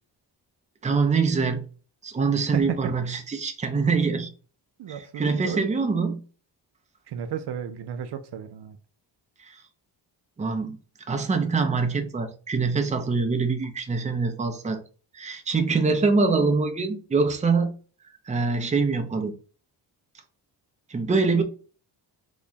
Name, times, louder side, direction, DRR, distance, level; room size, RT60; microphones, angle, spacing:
voice 1, 0.8-1.6 2.0-4.3 5.2-6.2 9.4-9.6 10.4-10.8 11.1-14.8 15.1-17.7 18.3-19.3 20.9-21.4, right 4 dB, 15° right, 0.5 m, -24 dB
voice 2, 2.4-2.8 4.8-5.7 7.1-8.8, right 9 dB, 60° right, 0.6 m, -33 dB
3.0 x 2.2 x 3.9 m
cardioid pair, 95°, 45 cm